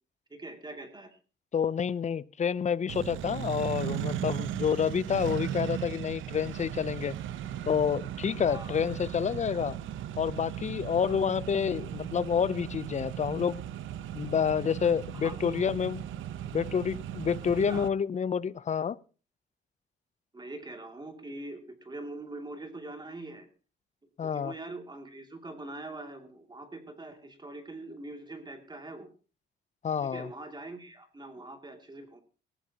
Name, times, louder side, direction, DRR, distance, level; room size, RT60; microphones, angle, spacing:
voice 1, 0.3-1.2 8.5-8.8 11.0-11.2 15.1-15.7 17.5-17.9 20.3-23.5 24.2-29.1 30.0-32.2, right 2 dB, 20° right, 5 dB, 2.6 m, -43 dB
voice 2, 1.5-7.2 7.7-9.8 10.2-13.6 14.1-16.0 16.5-19.0 24.2-24.5 29.8-30.3, left 7 dB, 35° left, 20 dB, 0.6 m, -28 dB
Accelerating revving vroom, 2.9-17.9, right 11 dB, 80° right, 0.8 m, -37 dB
19.0 x 14.5 x 2.9 m, 0.36 s
cardioid pair, 90°, 20 cm